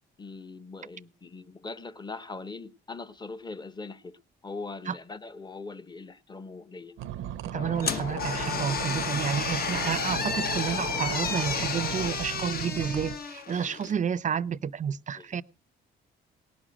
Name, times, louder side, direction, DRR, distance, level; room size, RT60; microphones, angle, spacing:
voice 1, 0.2-4.2 4.4-7.0 15.1-15.3, left 3 dB, 20° left, 0.9 m, -41 dB
sound 1, 7.0-13.2, right 11 dB, 85° right, 0.8 m, -37 dB
voice 2, 7.4-15.4, right 7 dB, 40° right, 0.6 m, -30 dB
Wind, 7.5-12.1, left 5 dB, 85° left, 1.7 m, -36 dB
sound 2, 7.8-14.0, left 5 dB, 50° left, 1.0 m, -33 dB
18.0 x 6.2 x 6.4 m
cardioid pair, 90°, 20 cm